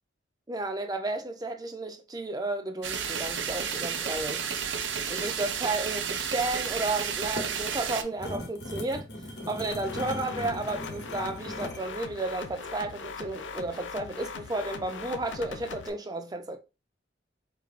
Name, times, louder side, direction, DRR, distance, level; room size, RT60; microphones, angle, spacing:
voice 1, 0.5-4.4 5.1-9.1 9.5-16.6, right 2 dB, 20° right, 0.5 m, -33 dB
sound 1, 2.8-8.0, right 7 dB, 85° right, 0.6 m, -32 dB
sound 2, 7.1-11.9, equal, 60° left, 1.0 m, -38 dB
sound 3, 9.7-15.9, left 5 dB, 85° left, 0.5 m, -40 dB
4.3 x 3.2 x 2.4 m
head